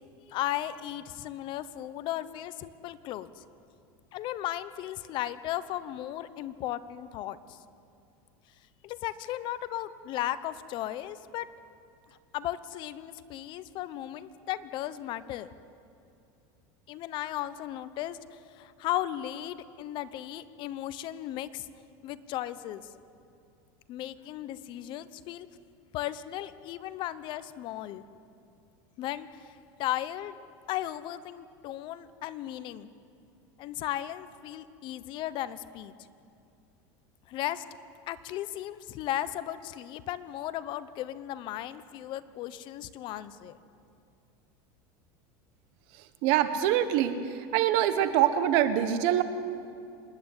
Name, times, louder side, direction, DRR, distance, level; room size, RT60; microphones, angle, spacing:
voice 1, 0.3-3.4 4.1-7.6 8.8-11.5 12.3-15.5 16.9-18.2 18.5-21.7 22.0-22.9 23.9-25.5 25.9-28.0 29.0-29.4 29.8-30.3 30.7-32.9 33.6-35.9 37.3-37.6 38.1-43.6, left 13 dB, 50° left, 14 dB, 0.9 m, -36 dB
voice 2, 46.2-49.2, right 11 dB, 60° right, 11 dB, 1.4 m, -24 dB
26.0 x 11.0 x 9.8 m, 2.5 s
supercardioid pair, 130°, 11 cm